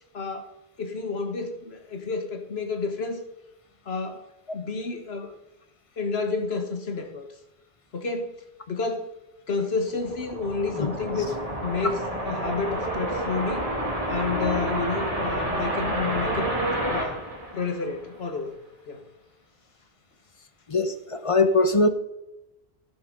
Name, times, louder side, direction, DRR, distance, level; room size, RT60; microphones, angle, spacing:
voice 1, 0.1-3.2 3.8-5.3 6.0-7.3 7.9-8.4 8.7-9.1 9.5-11.3 11.6-12.0 12.2-13.7 14.1-16.5 16.9-17.2 17.5-18.5 18.9-19.0, left 4 dB, 70° left, 6 dB, 1.6 m, -30 dB
sound 1, 9.8-18.2, right 1 dB, 35° right, 2.7 m, -29 dB
voice 2, 20.7-21.9, left 3 dB, 35° left, 9 dB, 0.9 m, -21 dB
11.0 x 11.0 x 3.9 m, 0.89 s
omnidirectional pair, 1.1 m